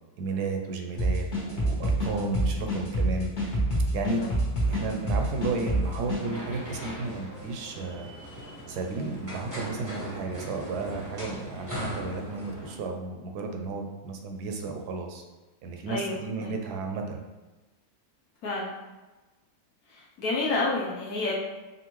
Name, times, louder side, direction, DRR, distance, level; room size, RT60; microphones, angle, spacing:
voice 1, 0.2-3.6 3.9-4.2 4.7-8.1 8.7-15.2 15.6-17.2, right 3 dB, 75° right, 3 dB, 1.1 m, -33 dB
sound 1, 1.0-6.2, right 1 dB, 45° left, 1.3 m, -26 dB
sound 2, 4.6-12.7, equal, 15° right, 0.7 m, -40 dB
voice 2, 15.9-16.6 18.4-18.7 19.9-21.3, left 2 dB, 65° left, -4 dB, 1.2 m, -30 dB
5.1 x 2.5 x 3.0 m, 1.2 s
omnidirectional pair, 1.8 m